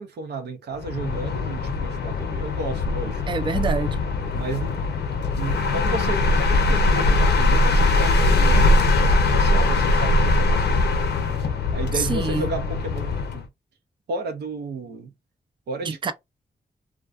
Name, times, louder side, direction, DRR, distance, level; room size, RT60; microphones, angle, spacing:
voice 1, 0.0-3.2 4.3-4.8 5.3-13.5 14.1-15.1 15.7-16.1, right 3 dB, 80° right, 0.5 m, -33 dB
sound 1, 0.8-13.4, left 2 dB, 75° left, 0.5 m, -21 dB
voice 2, 3.3-4.1 11.9-12.5 15.8-16.1, right 5 dB, 30° right, 0.4 m, -26 dB
2.3 x 2.3 x 2.4 m
cardioid pair, 45°, 17 cm